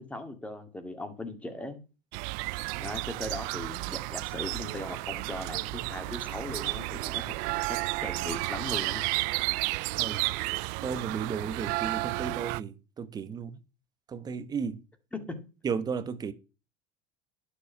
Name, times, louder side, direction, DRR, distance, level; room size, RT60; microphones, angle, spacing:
voice 1, 0.0-1.8 2.8-9.0 15.1-15.2, left 2 dB, 10° left, 2.2 m, -39 dB
sound 1, 2.1-12.6, right 24 dB, 60° right, 0.4 m, -32 dB
voice 2, 10.8-13.6 14.1-14.8 15.6-16.3, right 6 dB, 25° right, 1.2 m, -34 dB
11.0 x 6.8 x 5.8 m
supercardioid pair, 135°, 16 cm